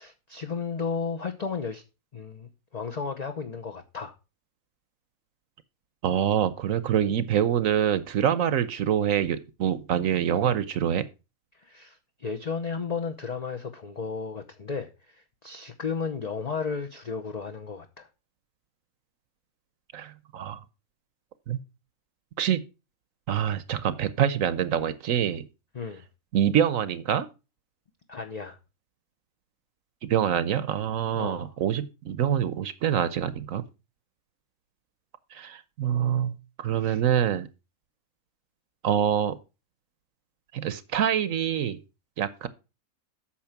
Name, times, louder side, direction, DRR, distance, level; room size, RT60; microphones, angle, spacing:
voice 1, 0.0-1.8 2.1-4.1 11.6-18.1 25.7-26.0 28.1-28.6 31.1-31.5 36.8-37.0, left 5 dB, 35° left, 0.8 m, -34 dB
voice 2, 6.0-11.1 19.9-20.6 21.5-21.6 22.4-22.6 23.3-25.5 26.3-27.3 30.0-33.6 35.3-37.5 38.8-39.4 40.5-41.8 42.2-42.5, right 9 dB, 70° right, 1.1 m, -25 dB
8.6 x 6.5 x 5.8 m
omnidirectional pair, 1.5 m